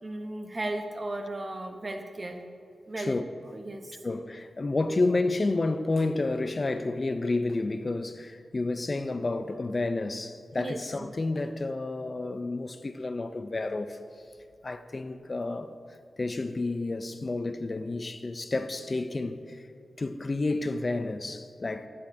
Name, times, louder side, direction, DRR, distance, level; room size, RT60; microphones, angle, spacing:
voice 1, 0.0-2.4 2.9-3.2 3.5-4.0 10.6-11.1, right 2 dB, 35° right, 0.9 m, -35 dB
voice 2, 4.0-14.0 14.6-15.7 16.2-19.7 20.0-21.9, left 2 dB, 40° left, 0.4 m, -30 dB
12.0 x 10.5 x 2.7 m
cardioid pair, 65°, 0 cm